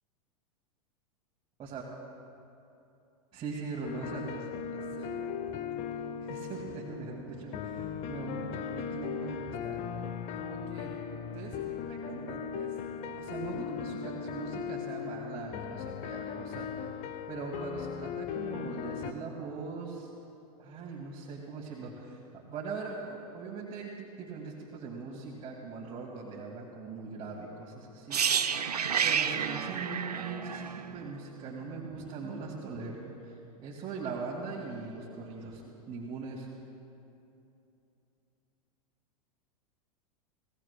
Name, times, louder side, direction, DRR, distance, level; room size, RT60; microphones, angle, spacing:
voice 1, 3.3-5.8 6.2-9.8 10.4-10.9 11.3-12.7 13.2-16.9 17.3-20.1 20.6-28.2 29.0-33.0 33.6-35.6 35.9-36.5, right 4 dB, 30° right, -4 dB, 2.2 m, -41 dB
sound 1, 3.8-19.1, left 7 dB, 35° left, 0.7 m, -38 dB
sound 2, 28.1-32.0 32.2-32.4, right 7 dB, 85° right, 0.6 m, -30 dB
22.0 x 18.0 x 2.2 m, 2.8 s
figure-of-eight pair, 95°, 20 cm